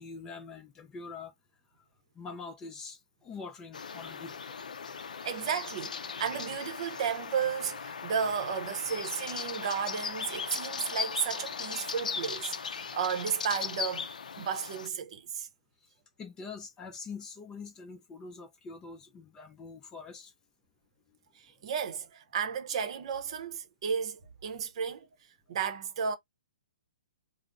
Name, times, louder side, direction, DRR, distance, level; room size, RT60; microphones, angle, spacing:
voice 1, 0.0-1.3 2.2-4.4 16.2-20.3, left 4 dB, 15° left, 0.4 m, -44 dB
sound 1, 3.7-14.9, left 6 dB, 80° left, 0.4 m, -38 dB
voice 2, 5.2-14.1 14.4-15.5 21.4-25.1 25.5-26.2, right 7 dB, 50° right, 0.7 m, -33 dB
2.4 x 2.0 x 3.5 m
hypercardioid pair, 150°, 4 cm